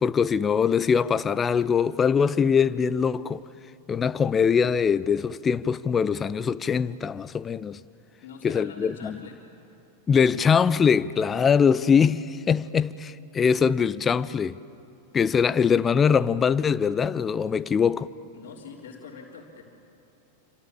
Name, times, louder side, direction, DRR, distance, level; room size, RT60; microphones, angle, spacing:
voice 1, 0.0-3.4 3.9-7.8 8.4-9.2 10.1-14.6 15.1-18.1, left 6 dB, 20° left, 0.6 m, -22 dB
voice 2, 8.2-9.4 18.3-19.6, left 6 dB, 50° left, 3.6 m, -43 dB
28.0 x 26.5 x 7.1 m
figure-of-eight pair, 90°, 0 cm